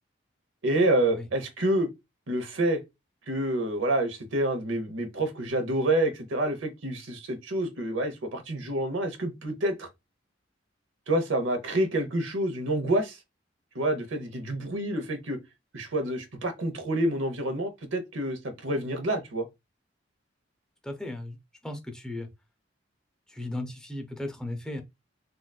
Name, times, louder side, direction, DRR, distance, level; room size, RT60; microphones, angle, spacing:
voice 1, 0.6-1.9 2.3-2.8 3.3-9.9 11.1-13.2 13.7-15.4 15.7-19.5, right 1 dB, 85° right, 0.9 m, -28 dB
voice 2, 20.8-21.4 21.6-22.3 23.3-24.8, left 1 dB, 5° left, 0.5 m, -36 dB
3.8 x 2.3 x 2.2 m
head